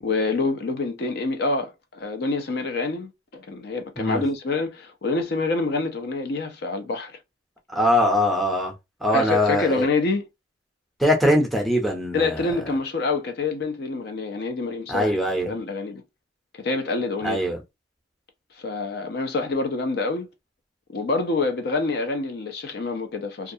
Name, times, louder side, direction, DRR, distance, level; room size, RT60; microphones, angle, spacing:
voice 1, 0.0-7.1 9.1-10.3 12.1-16.0 16.5-17.4 18.5-20.3 20.9-23.5, left 3 dB, 55° left, 0.5 m, -26 dB
voice 2, 7.7-8.7 9.0-9.9 11.0-12.4 14.9-15.5 17.2-17.6, equal, ahead, 0.6 m, -21 dB
2.4 x 2.2 x 2.6 m
head